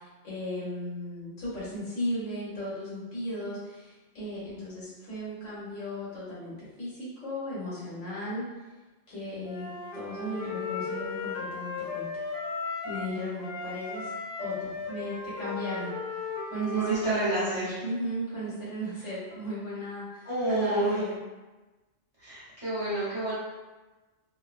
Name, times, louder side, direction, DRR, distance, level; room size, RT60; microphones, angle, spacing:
voice 1, 0.0-8.4 9.1-12.2 12.8-14.1 14.4-15.9 16.5-21.2, equal, 80° left, -9 dB, 1.3 m, -35 dB
Wind instrument woodwind instrument, 9.4-13.1 13.4-17.4, left 4 dB, 60° left, 0.7 m, -36 dB
voice 2, 16.7-17.7 20.2-21.1 22.2-23.3, right 1 dB, 30° right, -11 dB, 1.0 m, -29 dB
2.6 x 2.2 x 2.4 m, 1.2 s
omnidirectional pair, 1.3 m